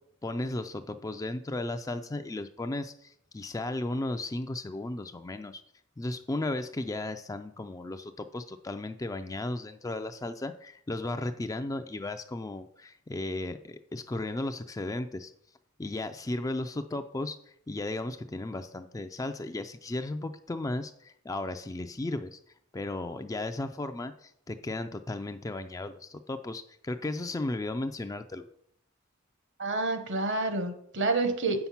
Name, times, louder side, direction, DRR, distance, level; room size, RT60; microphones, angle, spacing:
voice 1, 0.2-5.6 6.0-15.3 15.8-17.4 17.7-22.4 22.7-28.5, left 2 dB, 15° left, 8 dB, 0.3 m, -35 dB
voice 2, 29.6-31.7, right 3 dB, 60° right, 8 dB, 1.0 m, -28 dB
7.7 x 5.8 x 5.6 m, 0.69 s
head